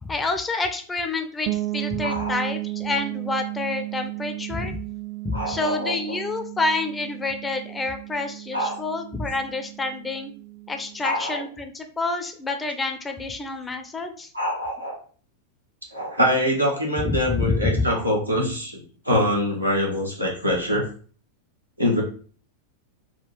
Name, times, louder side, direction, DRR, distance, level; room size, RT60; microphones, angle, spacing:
voice 1, 0.0-4.8 5.2-10.3 10.7-14.3 17.0-17.9, left 3 dB, 15° left, 6 dB, 0.5 m, -28 dB
sound 1, 1.5-11.1, right 19 dB, 45° right, 0.4 m, -34 dB
voice 2, 2.0-2.4 5.3-6.2 8.5-8.8 11.0-11.4 14.3-15.0 15.9-20.9 21.8-22.0, equal, 90° right, -3 dB, 1.1 m, -24 dB
3.7 x 2.3 x 3.1 m, 0.42 s
figure-of-eight pair, 90°, 0 cm